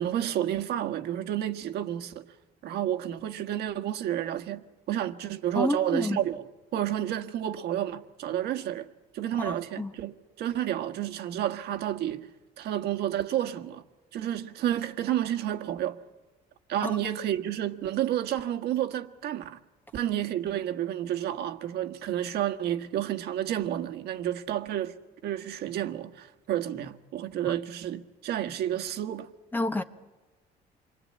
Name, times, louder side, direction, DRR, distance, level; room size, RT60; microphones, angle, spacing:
voice 1, 0.0-2.2 2.6-8.9 9.1-12.3 12.6-13.8 14.1-16.0 16.7-19.6 19.9-25.0 25.2-29.3, right 11 dB, 75° right, 1.6 m, -30 dB
voice 2, 5.5-6.2 9.4-9.9 16.8-16.9 29.5-29.8, left 2 dB, 10° left, 1.3 m, -29 dB
28.0 x 24.0 x 8.7 m
cardioid pair, 110°, 17 cm